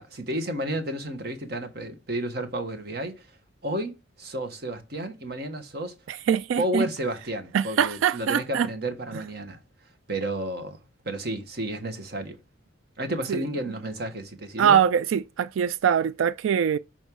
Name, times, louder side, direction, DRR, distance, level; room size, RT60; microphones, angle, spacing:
voice 1, 0.0-3.3 3.6-6.0 6.6-9.6 10.1-10.8 11.0-12.4 13.0-14.8, right 1 dB, 50° right, 1.4 m, -31 dB
voice 2, 6.3-6.9 7.5-8.7 13.3-13.4 14.6-16.8, right 8 dB, 80° right, 0.3 m, -23 dB
5.3 x 4.4 x 6.2 m
head